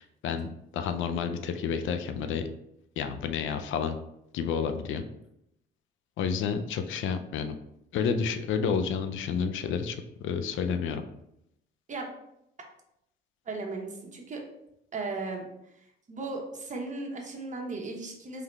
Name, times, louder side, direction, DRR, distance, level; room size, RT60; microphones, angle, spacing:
voice 1, 0.0-2.4 3.0-4.0 4.3-5.0 6.2-7.5 7.9-11.0, left 6 dB, 80° left, 8 dB, 0.5 m, -30 dB
voice 2, 13.5-14.4 14.9-15.5 16.1-18.4, right 3 dB, 40° right, 1 dB, 1.0 m, -36 dB
3.9 x 3.3 x 3.1 m, 0.80 s
cardioid pair, 90°, 20 cm